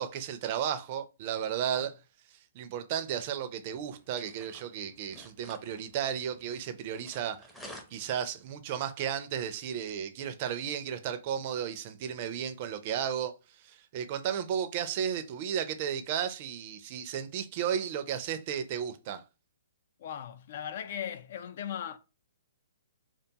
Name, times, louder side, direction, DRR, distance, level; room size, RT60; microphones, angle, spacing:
voice 1, 0.0-1.9 2.5-7.5 7.9-13.3 13.6-19.2, right 9 dB, 40° right, 0.4 m, -34 dB
sound 1, 3.6-8.6, left 1 dB, 5° left, 0.6 m, -53 dB
voice 2, 20.0-22.0, left 9 dB, 55° left, 0.3 m, -38 dB
2.5 x 2.3 x 2.7 m
hypercardioid pair, 130°, 0 cm